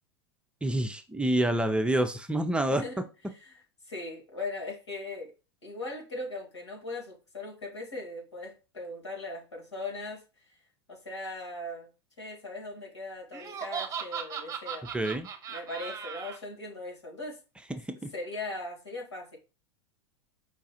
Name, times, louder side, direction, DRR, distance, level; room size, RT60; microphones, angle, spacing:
voice 1, 0.6-2.8 14.9-15.3 18.0-18.1, right 1 dB, 5° right, 0.5 m, -27 dB
voice 2, 2.7-3.0 3.4-5.3 5.6-10.2 10.9-11.9 12.2-14.9 15.5-17.4 18.1-19.4, left 2 dB, 90° left, 2.1 m, -39 dB
Laughter, 13.3-16.4, right 7 dB, 25° right, 0.9 m, -37 dB
5.1 x 2.3 x 4.2 m
hypercardioid pair, 100°, 14 cm